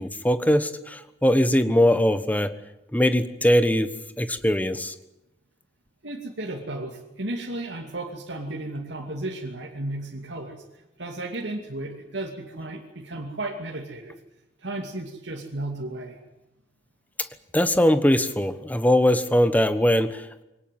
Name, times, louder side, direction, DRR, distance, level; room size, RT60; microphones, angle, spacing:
voice 1, 0.0-2.5 2.9-3.9 4.2-4.9 17.5-20.4, equal, 10° left, 11 dB, 1.2 m, -21 dB
voice 2, 6.0-14.1 14.6-16.2, right 2 dB, 85° right, -1 dB, 2.7 m, -34 dB
23.5 x 18.5 x 9.3 m, 0.94 s
head